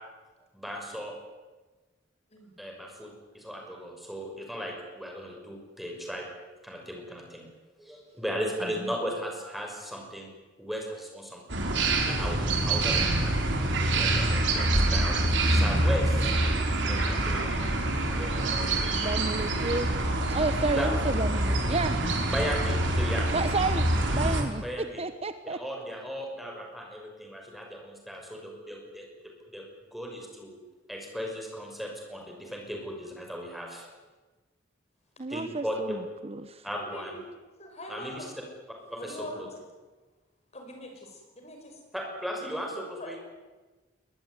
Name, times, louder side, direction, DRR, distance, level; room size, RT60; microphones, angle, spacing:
voice 1, 0.5-1.1 2.6-6.2 6.6-7.5 7.8-10.3 10.6-11.6 12.1-12.4 12.7-15.2 15.5-16.3 16.8-17.7 18.2-19.1 20.8-20.9 22.3-23.3 24.6-25.0 25.4-29.1 29.5-29.6 29.9-30.6 30.9-33.9 35.3-36.0 36.6-37.2 37.9-38.3 38.9-39.5 41.9-43.2, equal, ahead, 1 dB, 6.0 m, -36 dB
sound 1, 11.5-24.4, right 2 dB, 70° right, 4.7 m, -26 dB
voice 2, 19.0-19.9 20.3-22.0 23.3-24.6 25.0-25.6 35.2-36.0 36.2-36.6, right 3 dB, 35° right, 11 dB, 1.0 m, -31 dB
voice 3, 36.7-37.2 37.6-38.3 39.0-39.5 40.5-41.8 43.0-43.2, equal, 35° left, 3 dB, 6.6 m, -43 dB
23.0 x 20.0 x 9.6 m, 1.3 s
head